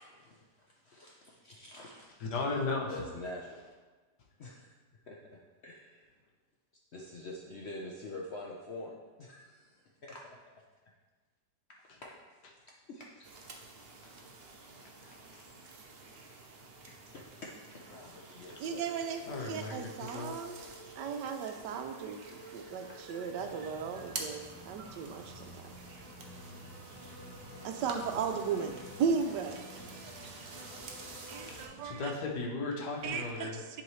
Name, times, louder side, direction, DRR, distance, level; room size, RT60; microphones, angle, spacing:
voice 1, 0.1-2.2 2.9-3.5 4.4-4.7 5.1-5.2 5.6-6.1 6.9-10.2 11.9-12.1 12.9-13.3 16.8-18.8 22.8-23.0, left 2 dB, 60° left, -2 dB, 0.7 m, -46 dB
voice 2, 2.2-3.0 15.0-15.5 19.2-20.3 31.8-33.6, left 3 dB, 75° left, -1 dB, 1.6 m, -36 dB
sound 1, 13.2-31.7, right 3 dB, 55° right, 0.7 m, -49 dB
sound 2, 18.6-23.6, right 1 dB, 35° right, 1.3 m, -52 dB
voice 3, 18.6-20.6 21.0-25.7 27.6-30.6 31.3-32.1 33.0-33.8, right 6 dB, 80° right, 5 dB, 1.2 m, -36 dB
sound 3, 23.4-32.0, equal, 30° left, 0.4 m, -51 dB
10.5 x 3.8 x 3.2 m, 1.3 s
omnidirectional pair, 1.8 m